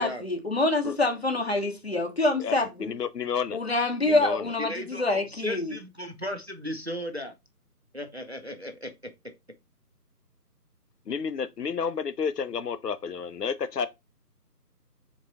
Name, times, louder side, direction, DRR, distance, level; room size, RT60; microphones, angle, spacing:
voice 1, 0.0-3.0 3.5-5.8, left 2 dB, 40° left, 0.7 m, -26 dB
voice 2, 2.4-3.6 4.0-4.4 11.1-13.9, left 6 dB, 75° left, 0.6 m, -31 dB
voice 3, 4.6-7.3 7.9-8.9, equal, 45° right, 0.5 m, -35 dB
3.8 x 3.0 x 3.8 m
figure-of-eight pair, 160°, 48 cm